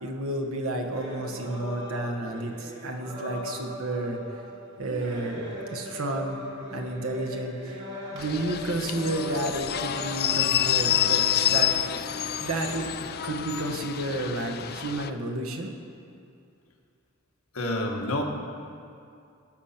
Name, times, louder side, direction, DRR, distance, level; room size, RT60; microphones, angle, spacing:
voice 1, 0.0-4.2 4.8-5.4 5.7-6.4 6.7-11.7 12.4-12.9 13.2-15.7, right 2 dB, 75° right, 3 dB, 1.4 m, -31 dB
sound 1, 0.9-12.0, equal, 55° right, 2.5 m, -39 dB
sound 2, 8.2-15.1, left 11 dB, 45° left, 0.4 m, -28 dB
voice 2, 17.5-18.2, left 1 dB, 90° left, 1 dB, 1.5 m, -28 dB
18.0 x 6.6 x 5.9 m, 2.5 s
head